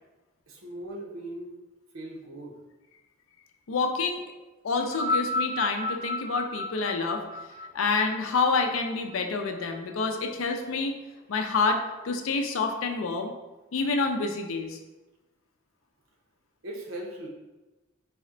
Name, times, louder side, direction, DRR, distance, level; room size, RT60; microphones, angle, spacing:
voice 1, 0.5-1.5 1.9-2.6 16.6-17.3, right 1 dB, 85° right, -1 dB, 0.8 m, -39 dB
voice 2, 3.7-4.2 4.6-7.2 7.7-11.0 11.3-13.3 13.7-14.8, left 4 dB, 90° left, 4 dB, 0.5 m, -28 dB
sound 1, 4.8-9.3 10.2-10.3, left 2 dB, 15° right, 1.0 m, -32 dB
4.1 x 2.1 x 3.7 m, 1.1 s
head